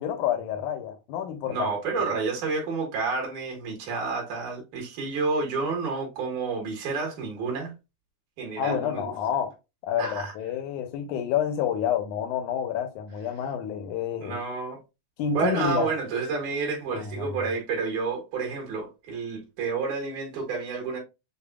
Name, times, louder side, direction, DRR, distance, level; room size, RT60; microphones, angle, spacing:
voice 1, 0.0-1.7 2.1-2.2 8.6-9.5 9.8-14.4 15.2-15.9 16.9-17.4, left 9 dB, 80° left, 2.0 m, -29 dB
voice 2, 1.5-7.7 8.4-9.1 10.0-10.3 14.2-14.8 15.3-21.0, right 4 dB, 65° right, 2.7 m, -30 dB
6.8 x 2.4 x 2.2 m
omnidirectional pair, 3.8 m